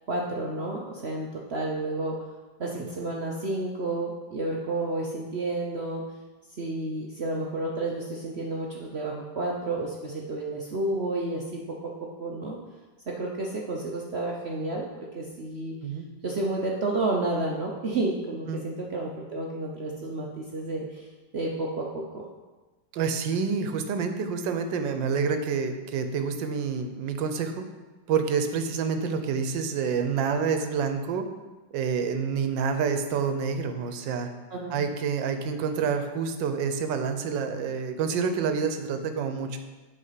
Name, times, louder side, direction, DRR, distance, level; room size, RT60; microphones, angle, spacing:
voice 1, 0.1-2.2 2.6-6.0 6.5-11.9 12.2-12.6 13.1-15.7 16.2-21.1 21.3-22.2 34.5-34.8, right 2 dB, 55° right, -1 dB, 0.7 m, -31 dB
voice 2, 22.9-27.6 28.1-31.3 31.7-34.3 34.7-39.6, right 6 dB, 80° right, 7 dB, 1.4 m, -28 dB
8.5 x 4.8 x 5.7 m, 1.2 s
omnidirectional pair, 2.0 m